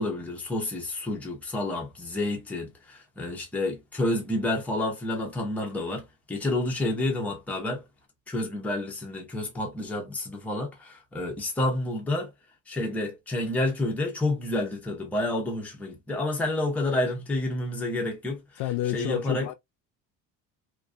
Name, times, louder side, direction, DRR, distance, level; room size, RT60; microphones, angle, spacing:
voice 1, 0.0-7.8 8.3-12.3 12.7-18.4 18.9-19.5, left 1 dB, 5° left, 0.5 m, -29 dB
voice 2, 18.6-19.5, left 13 dB, 70° left, 0.5 m, -29 dB
2.4 x 2.3 x 2.4 m
cardioid pair, 165°, 31 cm